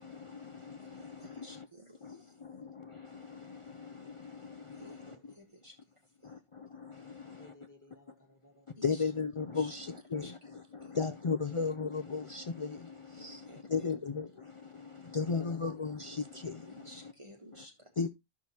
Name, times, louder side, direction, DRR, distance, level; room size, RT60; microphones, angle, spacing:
voice 1, 0.0-1.7 2.0-5.3 6.2-7.5 8.8-17.1 18.0-18.1, left 5 dB, 45° left, 0.4 m, -37 dB
voice 2, 0.9-2.3 4.8-5.8 6.2-6.3 8.8-9.0 9.4-9.7 10.2-10.3 10.8-10.9 13.2-13.9 16.7-17.9, equal, 30° right, 1.2 m, -54 dB
voice 3, 5.0-5.4 7.3-8.8 10.7-10.8 15.1-15.7 16.8-16.9 17.3-17.4, left 1 dB, 20° left, 1.4 m, -60 dB
12.5 x 6.0 x 2.8 m
omnidirectional pair, 1.0 m